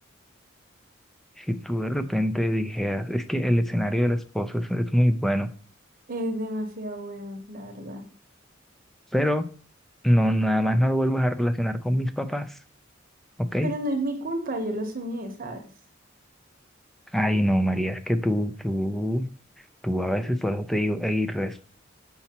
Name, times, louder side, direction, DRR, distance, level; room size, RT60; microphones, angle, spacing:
voice 1, 1.4-5.5 9.1-9.5 10.0-12.5 13.4-13.7 17.1-19.3 19.8-21.7, equal, ahead, 10 dB, 0.4 m, -24 dB
voice 2, 6.1-8.0 13.6-15.6, right 1 dB, 45° right, 5 dB, 1.0 m, -31 dB
7.0 x 5.5 x 2.9 m, 0.41 s
head